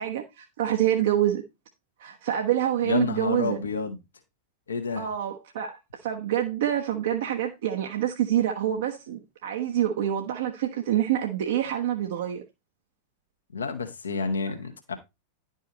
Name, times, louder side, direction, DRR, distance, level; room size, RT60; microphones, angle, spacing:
voice 1, 0.0-1.4 2.0-3.6 5.0-12.4, right 11 dB, 55° right, 1.0 m, -26 dB
voice 2, 2.8-4.0 4.7-5.1 13.5-14.9, left 5 dB, 70° left, 1.4 m, -29 dB
11.0 x 5.5 x 4.1 m
figure-of-eight pair, 90°, 0 cm